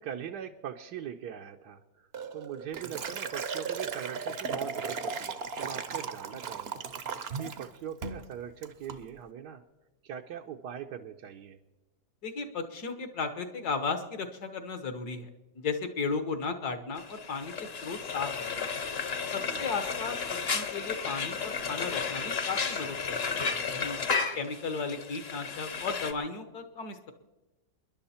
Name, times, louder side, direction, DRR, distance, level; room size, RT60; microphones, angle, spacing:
voice 1, 0.0-6.9 7.4-9.6 10.0-11.6 19.5-19.7 24.0-24.5, right 9 dB, 80° right, 3 dB, 1.3 m, -41 dB
Liquid, 2.1-7.7 8.0-8.3 8.6-9.0, right 5 dB, 50° right, 0.8 m, -36 dB
voice 2, 12.2-15.3 15.6-18.7 19.3-23.2 23.4-24.0 24.4-27.1, left 4 dB, 65° left, 8 dB, 1.7 m, -35 dB
Frying (food), 17.0-26.1, left 5 dB, 45° left, 1.0 m, -33 dB
28.0 x 11.0 x 4.3 m, 1.1 s
omnidirectional pair, 1.8 m